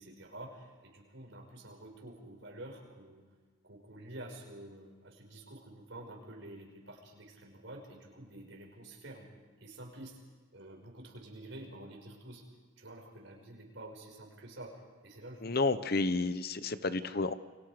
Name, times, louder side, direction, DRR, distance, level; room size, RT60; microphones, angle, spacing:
voice 1, 0.0-3.3 3.6-9.3 9.6-10.2 10.5-12.4 12.8-15.6, right 1 dB, 60° right, 0 dB, 5.7 m, -49 dB
voice 2, 15.4-17.3, left 3 dB, 50° left, 12 dB, 1.0 m, -31 dB
29.5 x 23.5 x 5.1 m, 1.5 s
head